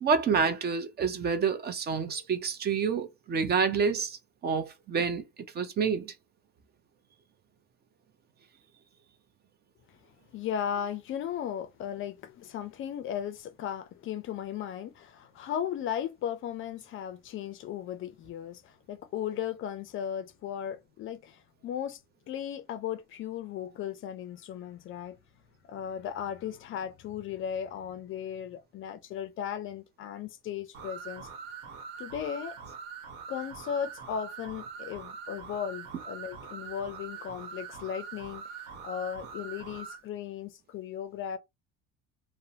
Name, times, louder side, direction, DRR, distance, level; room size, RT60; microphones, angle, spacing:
voice 1, 0.0-5.2 5.5-6.1, right 5 dB, 30° right, 0.5 m, -28 dB
voice 2, 10.3-22.0 22.3-25.2 25.7-31.3 32.0-32.6 33.3-41.4, left 9 dB, 40° left, 0.4 m, -36 dB
sound 1, 30.7-40.0, right 6 dB, 75° right, 1.0 m, -43 dB
2.5 x 2.1 x 2.8 m
cardioid pair, 125°, 31 cm